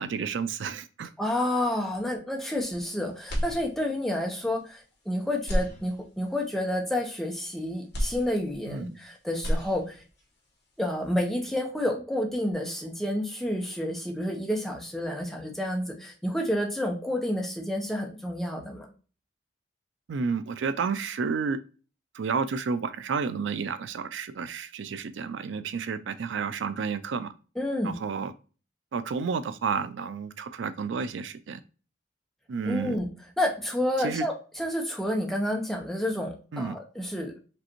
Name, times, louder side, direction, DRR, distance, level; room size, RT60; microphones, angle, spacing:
voice 1, 0.0-1.1 8.7-8.9 20.1-21.6 22.1-27.3 27.8-28.3 28.9-31.6 32.5-33.0 34.0-34.3 36.5-36.7, right 5 dB, 70° right, 12 dB, 0.4 m, -31 dB
voice 2, 1.2-4.8 5.1-10.0 10.8-18.9 27.6-28.0 32.6-33.1 33.4-37.3, left 1 dB, ahead, 0 dB, 0.9 m, -29 dB
sound 1, 3.2-4.2 4.6-4.7 5.3-6.4 7.9-9.0 9.3-10.2, equal, 60° left, 1.7 m, -31 dB
5.1 x 3.3 x 2.9 m, 0.36 s
head